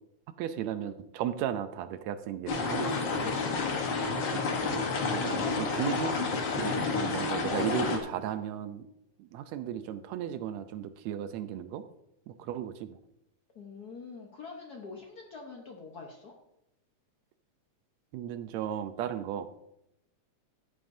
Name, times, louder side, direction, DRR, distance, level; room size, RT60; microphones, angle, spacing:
voice 1, 0.4-3.3 4.3-6.2 6.5-8.9 9.2-11.8 12.3-13.0 18.1-19.5, right 10 dB, 80° right, 11 dB, 1.8 m, -35 dB
sound 1, 2.5-8.0, left 4 dB, 55° left, 1.4 m, -30 dB
voice 2, 13.5-16.3, left 4 dB, 80° left, 1 dB, 0.8 m, -45 dB
14.5 x 8.1 x 2.7 m, 0.82 s
omnidirectional pair, 3.3 m